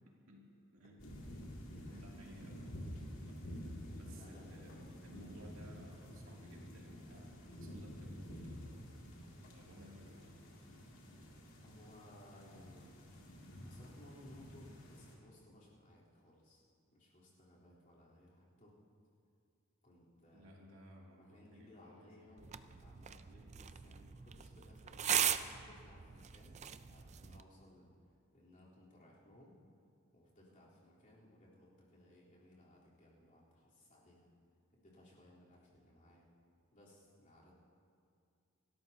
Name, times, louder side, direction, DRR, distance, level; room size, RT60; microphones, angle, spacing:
voice 1, 0.3-1.0 1.9-2.9 3.2-3.6 4.0-9.1 9.5-10.3 20.3-22.5 23.3-23.6, equal, 75° right, -3 dB, 2.7 m, -58 dB
sound 1, 1.0-15.2, equal, 70° left, 2.6 m, -50 dB
voice 2, 4.1-4.5 11.6-13.0 13.6-16.6 16.9-18.8 19.8-20.5 21.2-27.9 28.3-29.6 30.1-34.3 34.7-36.3 36.7-37.5, left 1 dB, 40° left, -7 dB, 3.7 m, -61 dB
sound 2, 22.4-27.4, right 9 dB, 35° right, 0.4 m, -39 dB
27.5 x 13.0 x 2.9 m, 2.3 s
head